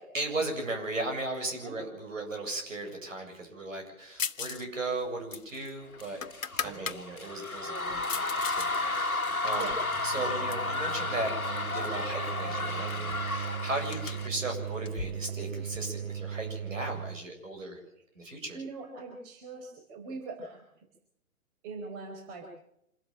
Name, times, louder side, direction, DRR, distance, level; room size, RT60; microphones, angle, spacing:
voice 1, 0.1-9.7 10.0-17.8 18.2-18.6, right 2 dB, 65° right, 3 dB, 7.8 m, -36 dB
sound 1, 4.2-4.7 4.9-7.0 7.5-8.7 9.1-10.8 11.4-12.0 12.3-12.4 12.7-15.8, left 6 dB, 65° left, 1.1 m, -39 dB
sound 2, 6.0-14.3, left 2 dB, 85° left, 1.7 m, -33 dB
voice 2, 6.5-6.8 7.6-8.0 9.5-9.9 10.2-10.4 18.5-20.6 21.6-22.5, right 3 dB, 30° right, 3 dB, 5.1 m, -42 dB
sound 3, 9.5-17.3, right 8 dB, 45° right, 1.1 m, -38 dB
27.0 x 13.0 x 7.5 m, 0.76 s
figure-of-eight pair, 125°, 42 cm